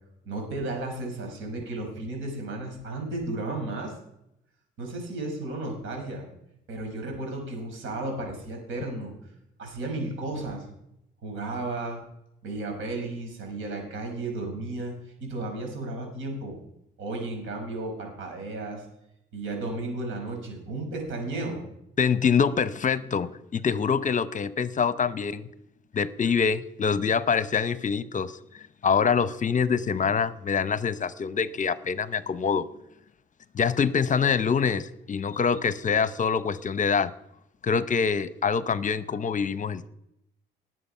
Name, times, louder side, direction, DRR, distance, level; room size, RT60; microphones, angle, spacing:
voice 1, 0.2-4.0 4.8-6.3 6.7-9.1 9.6-10.7 11.2-12.0 12.4-16.6 17.0-18.9 19.3-21.7, right 2 dB, 80° right, 2 dB, 5.5 m, -34 dB
voice 2, 22.0-25.5 25.9-32.7 33.5-37.1 37.6-39.9, left 6 dB, 40° left, 15 dB, 0.8 m, -25 dB
19.5 x 7.7 x 5.6 m, 0.79 s
cardioid pair, 90°, 20 cm